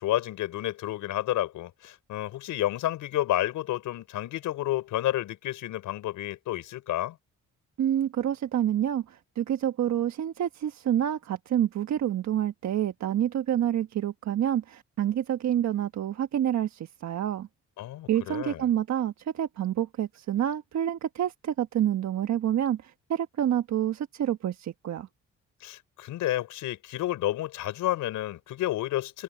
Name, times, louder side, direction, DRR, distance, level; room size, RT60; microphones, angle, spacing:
voice 1, 0.0-7.2 17.8-18.6 25.6-29.2, left 14 dB, 85° left, 5.3 m, -30 dB
voice 2, 7.8-17.5 18.1-25.1, right 10 dB, 65° right, 1.3 m, -28 dB
cardioid pair, 90°, 30 cm